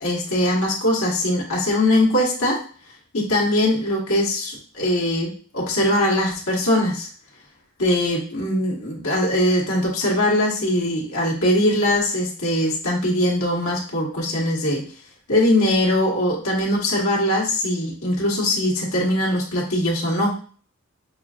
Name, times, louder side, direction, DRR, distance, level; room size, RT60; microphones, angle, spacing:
voice 1, 0.0-2.6 3.1-7.1 7.8-14.8 15.3-20.3, left 1 dB, 75° left, -4 dB, 1.3 m, -21 dB
6.1 x 2.5 x 2.4 m, 0.42 s
head